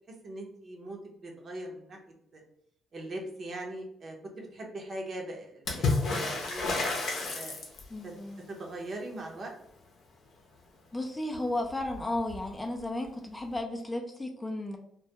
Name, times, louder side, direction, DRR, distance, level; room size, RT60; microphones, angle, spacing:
voice 1, 0.2-2.0 2.3-2.4 2.9-5.9 6.2-6.8 7.3-7.6 8.0-8.1 8.5-9.5, right 1 dB, 50° right, 0 dB, 0.7 m, -40 dB
Water / Splash splatter, 5.7-8.1 11.3-11.4 11.7-12.5 13.5-13.6, left 3 dB, 65° left, 0.6 m, -30 dB
voice 2, 7.9-8.4 10.9-14.8, left 1 dB, 15° left, 2 dB, 0.4 m, -34 dB
2.2 x 2.1 x 2.7 m, 0.72 s
cardioid pair, 90°, 0 cm